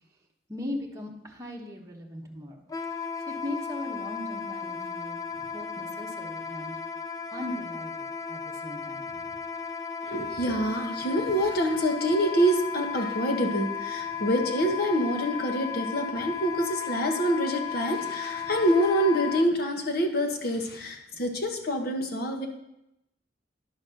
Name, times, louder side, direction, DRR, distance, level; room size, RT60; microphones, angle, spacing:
voice 1, 0.5-2.7 3.3-6.7 7.3-9.4 14.1-14.3 18.4-18.5 20.6-20.7 21.1-21.2, left 1 dB, 20° right, -2 dB, 1.1 m, -39 dB
Wind instrument woodwind instrument, 2.7-19.5, left 6 dB, 20° left, 0.3 m, -35 dB
voice 2, 10.0-22.5, equal, 55° left, 4 dB, 1.2 m, -26 dB
10.5 x 4.2 x 6.4 m, 0.85 s
head